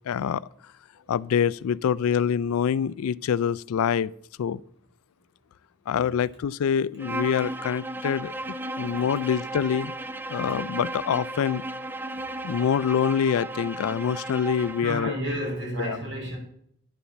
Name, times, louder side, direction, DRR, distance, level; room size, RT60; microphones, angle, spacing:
voice 1, 0.1-0.4 1.1-4.1 4.4-4.6 5.9-8.3 8.8-9.9 10.3-11.6 12.4-15.1 15.9-16.0, left 7 dB, 80° left, 0.3 m, -25 dB
Bowed string instrument, 7.0-14.9, right 1 dB, 10° right, 0.4 m, -34 dB
voice 2, 14.8-16.4, equal, 55° right, 5.0 m, -31 dB
9.9 x 7.1 x 7.0 m
head